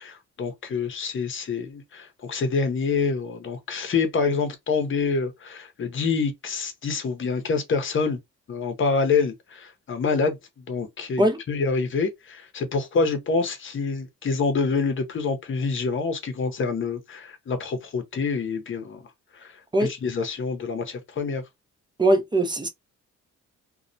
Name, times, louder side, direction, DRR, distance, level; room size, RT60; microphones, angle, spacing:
voice 1, 0.0-8.2 8.5-19.1 19.3-21.4, left 4 dB, 40° left, 0.8 m, -27 dB
voice 2, 22.0-22.7, right 1 dB, 15° right, 0.5 m, -20 dB
2.3 x 2.1 x 2.6 m
cardioid pair, 90°, 30 cm